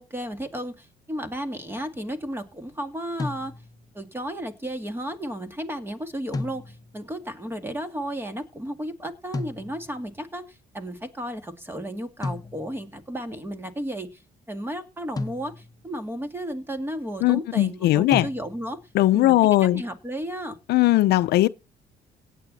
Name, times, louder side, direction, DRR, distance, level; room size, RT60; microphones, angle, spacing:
voice 1, 0.0-3.5 3.9-14.2 14.5-18.8 19.1-20.6, equal, 15° right, 2.2 m, -33 dB
sound 1, 3.2-3.9 6.3-7.1 9.3-10.1 12.2-13.0 15.2-15.9 18.1-18.9, left 3 dB, 20° left, 1.0 m, -34 dB
voice 2, 17.2-18.3 18.9-19.8 20.7-21.5, left 16 dB, 75° left, 0.6 m, -19 dB
17.5 x 9.1 x 4.1 m
cardioid pair, 110°, 17 cm